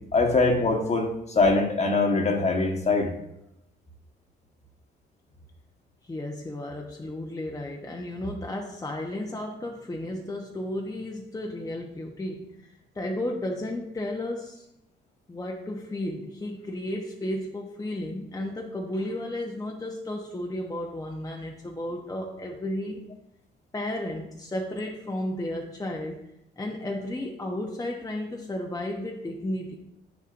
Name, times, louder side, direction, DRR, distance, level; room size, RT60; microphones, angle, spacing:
voice 1, 0.1-3.1, left 3 dB, 35° left, 3 dB, 1.4 m, -23 dB
voice 2, 6.0-14.7 15.3-23.1 23.7-26.2 26.6-29.8, left 1 dB, 15° left, 0 dB, 0.9 m, -33 dB
9.2 x 6.8 x 2.6 m, 0.83 s
cardioid pair, 90°, 20 cm